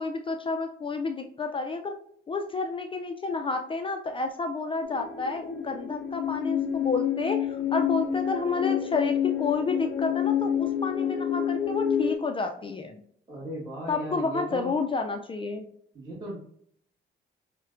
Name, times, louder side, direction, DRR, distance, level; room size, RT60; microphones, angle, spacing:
voice 1, 0.0-1.9 2.3-13.0 13.9-15.7, left 4 dB, 25° left, 5 dB, 0.4 m, -30 dB
sound 1, 4.8-12.2, left 9 dB, 90° left, 0.6 m, -28 dB
voice 2, 13.3-14.7 15.9-16.4, right 1 dB, 20° right, -7 dB, 1.2 m, -36 dB
5.3 x 2.2 x 2.5 m, 0.64 s
cardioid pair, 90°, 20 cm